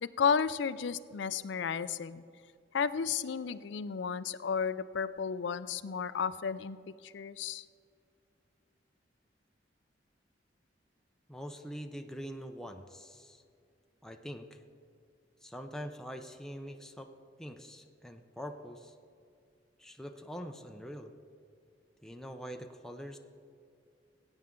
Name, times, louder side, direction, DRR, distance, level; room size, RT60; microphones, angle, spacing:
voice 1, 0.0-2.2 2.7-6.8 7.0-7.6, left 6 dB, 75° left, 15 dB, 0.4 m, -33 dB
voice 2, 11.3-13.4 14.0-14.6 15.4-17.1 17.4-18.9 19.8-21.1 22.0-23.2, equal, 5° left, 4 dB, 0.5 m, -44 dB
16.5 x 8.9 x 3.7 m, 2.4 s
head